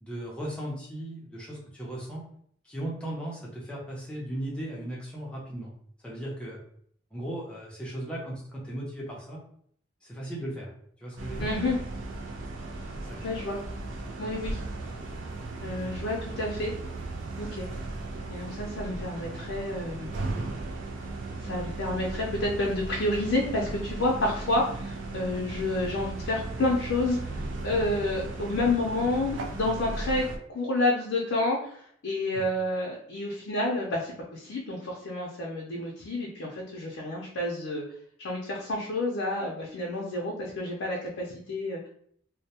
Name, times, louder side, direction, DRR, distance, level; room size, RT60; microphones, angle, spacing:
voice 1, 0.0-2.2 2.6-5.7 6.0-6.6 7.1-9.4 10.0-10.7 11.0-11.5 13.1-13.2 32.3-32.4, right 1 dB, 5° left, -5 dB, 0.6 m, -37 dB
sound 1, 11.2-30.4, right 2 dB, 75° right, 0.4 m, -36 dB
voice 2, 11.4-11.8 13.2-13.6 14.2-14.6 15.6-16.7 17.4-17.7 18.3-20.1 21.4-37.8 38.2-41.9, left 2 dB, 85° left, -3 dB, 0.5 m, -29 dB
2.1 x 2.1 x 2.8 m, 0.63 s
head